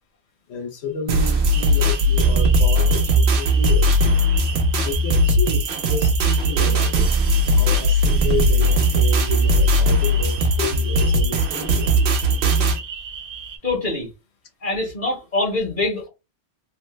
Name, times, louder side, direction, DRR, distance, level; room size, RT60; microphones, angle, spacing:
voice 1, 0.5-3.9 4.8-7.2 7.5-11.9, left 6 dB, 75° left, 0.9 m, -31 dB
sound 1, 1.1-12.8, equal, 75° right, 0.9 m, -18 dB
sound 2, 1.5-13.6, right 6 dB, 55° right, 0.4 m, -36 dB
voice 2, 13.6-14.1 14.6-16.1, left 2 dB, 50° left, 1.4 m, -24 dB
3.1 x 2.1 x 3.1 m
omnidirectional pair, 1.1 m